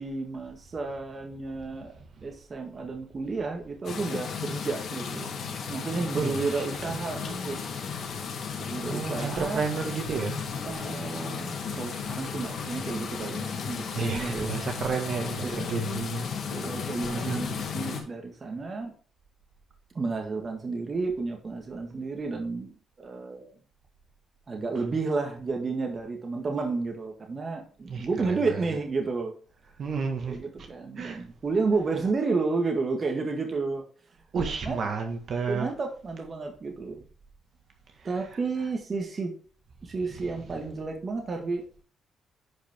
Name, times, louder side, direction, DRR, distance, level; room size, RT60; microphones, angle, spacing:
voice 1, 0.0-1.9 2.2-5.3 5.7-7.6 8.6-9.6 10.6-14.5 15.4-15.7 16.5-18.9 19.9-23.5 24.5-29.3 30.3-33.8 34.6-34.8 35.5-37.0 38.0-39.3 39.8-41.6, right 4 dB, 35° right, 1.6 m, -31 dB
sound 1, 3.8-18.0, left 6 dB, 65° left, 1.9 m, -34 dB
voice 2, 6.1-6.9 8.8-10.5 13.9-16.3 17.1-17.6 27.9-28.6 29.8-30.4 31.0-31.3 34.3-35.7 38.0-38.1 40.2-40.3, right 5 dB, 55° right, 1.7 m, -32 dB
10.0 x 5.1 x 3.6 m
cardioid pair, 90°, 0 cm